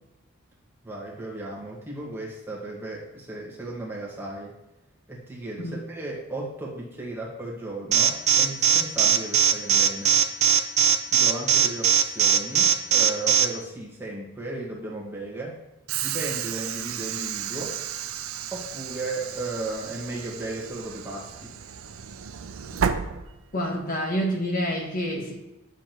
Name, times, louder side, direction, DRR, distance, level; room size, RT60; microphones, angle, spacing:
voice 1, 0.8-4.5 5.1-10.2 11.1-15.6 16.0-17.8 18.5-21.6, right 2 dB, 10° right, -4 dB, 1.6 m, -35 dB
Alarm, 7.9-13.4, right 8 dB, 30° right, 0.6 m, -19 dB
Train / Sliding door, 15.9-23.9, right 8 dB, 80° right, 0.5 m, -33 dB
voice 2, 23.5-25.4, equal, 40° left, 0 dB, 1.1 m, -28 dB
9.9 x 6.9 x 3.0 m, 0.96 s
head